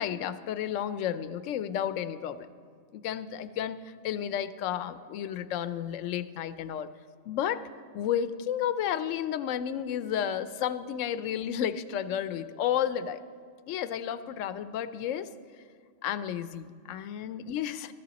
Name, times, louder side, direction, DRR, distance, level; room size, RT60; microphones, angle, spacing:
voice 1, 0.0-2.5 2.9-3.8 4.0-6.9 7.3-7.6 7.9-13.2 13.7-15.3 16.0-17.9, left 9 dB, 80° left, 14 dB, 0.9 m, -32 dB
14.0 x 14.0 x 4.1 m, 2.1 s
omnidirectional pair, 1.3 m